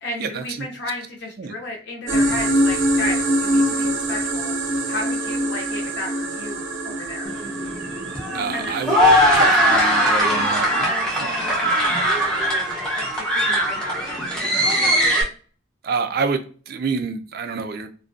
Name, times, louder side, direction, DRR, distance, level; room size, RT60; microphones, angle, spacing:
voice 1, 0.0-4.5 4.9-7.3 8.5-8.8 9.1-9.3 9.6-12.6 13.0-15.1, left 2 dB, 60° left, 0.5 m, -33 dB
sound 1, 2.1-10.8, right 1 dB, 85° right, 0.7 m, -24 dB
sound 2, 7.3-15.2, equal, 5° left, 0.5 m, -20 dB
voice 2, 8.3-9.0 9.4-10.6 11.2-11.3 15.8-17.9, right 5 dB, 50° right, 0.3 m, -27 dB
2.4 x 2.2 x 2.4 m
head